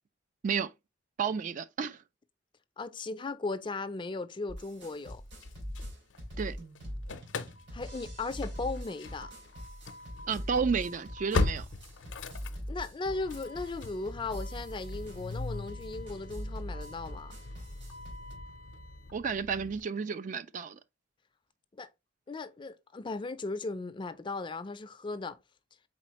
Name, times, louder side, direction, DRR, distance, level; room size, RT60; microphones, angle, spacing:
voice 1, 1.2-2.0 6.4-6.6 10.3-11.7 19.1-20.8, right 6 dB, 45° right, 0.3 m, -31 dB
voice 2, 2.8-5.2 7.7-9.3 12.7-17.3 21.8-21.9 22.3-25.4, left 3 dB, 25° left, 0.4 m, -37 dB
sound 1, 4.5-18.3, equal, 70° right, 2.3 m, -42 dB
Engine starting / Slam, 5.1-6.5 6.8-19.8, left 3 dB, 80° left, 0.6 m, -39 dB
4.2 x 4.1 x 2.9 m
head